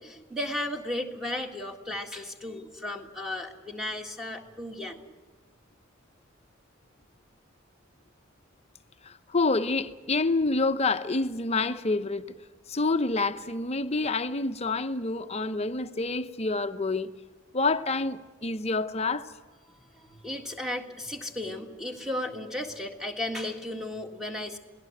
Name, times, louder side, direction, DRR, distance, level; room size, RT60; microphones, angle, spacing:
voice 1, 0.0-5.0 20.0-24.6, left 1 dB, 5° right, 1.8 m, -35 dB
voice 2, 9.3-12.2 12.7-17.1 17.5-19.3, left 3 dB, 30° left, 0.8 m, -27 dB
28.0 x 18.5 x 7.9 m
head